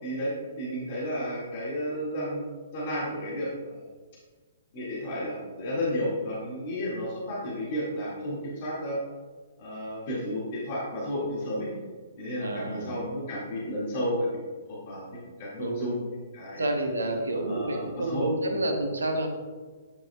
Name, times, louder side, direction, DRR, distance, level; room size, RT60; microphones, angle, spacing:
voice 1, 0.0-2.4 2.7-3.7 4.7-9.0 9.6-11.7 12.2-14.4 14.9-16.7 17.4-18.6, equal, 45° left, -6 dB, 1.8 m, -32 dB
voice 2, 12.4-13.0 15.6-15.9 16.5-19.3, right 1 dB, 75° right, 4 dB, 0.9 m, -29 dB
8.9 x 4.7 x 2.2 m, 1.4 s
figure-of-eight pair, 120°, 0 cm